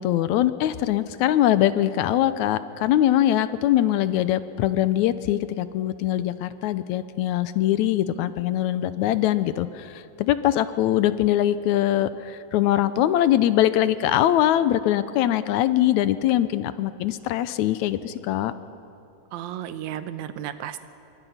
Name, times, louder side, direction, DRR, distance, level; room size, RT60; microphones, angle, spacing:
voice 1, 0.0-18.5, left 12 dB, 80° left, 13 dB, 2.0 m, -22 dB
voice 2, 19.3-20.9, right 11 dB, 75° right, 11 dB, 2.1 m, -33 dB
27.0 x 23.0 x 5.7 m, 2.7 s
omnidirectional pair, 3.4 m